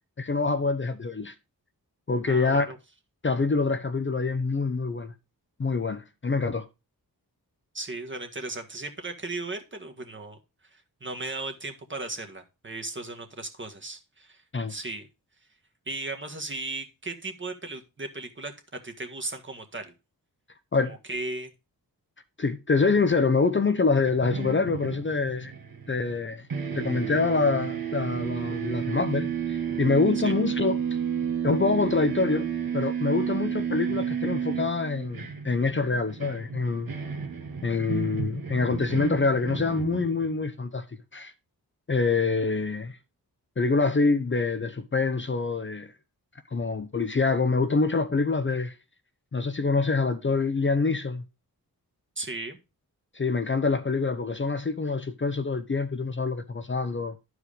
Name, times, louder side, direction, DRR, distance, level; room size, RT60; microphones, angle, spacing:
voice 1, 0.2-1.3 2.1-2.7 3.2-5.1 5.6-6.7 14.5-14.7 20.7-21.0 22.4-25.5 25.9-26.5 26.7-30.8 31.4-36.9 37.6-40.8 41.1-41.3 41.9-43.0 43.6-45.9 46.5-48.7 49.3-51.2 53.1-57.2, left 4 dB, 30° left, 0.8 m, -26 dB
voice 2, 2.3-2.8 7.7-10.4 10.7-14.4 14.7-15.1 15.9-19.9 21.1-21.5 30.2-30.3 52.1-52.6, right 2 dB, 30° right, 1.7 m, -36 dB
sound 1, 24.0-26.2 26.5-40.5, right 8 dB, 65° right, 1.5 m, -32 dB
11.0 x 4.9 x 4.9 m
cardioid pair, 65°, 37 cm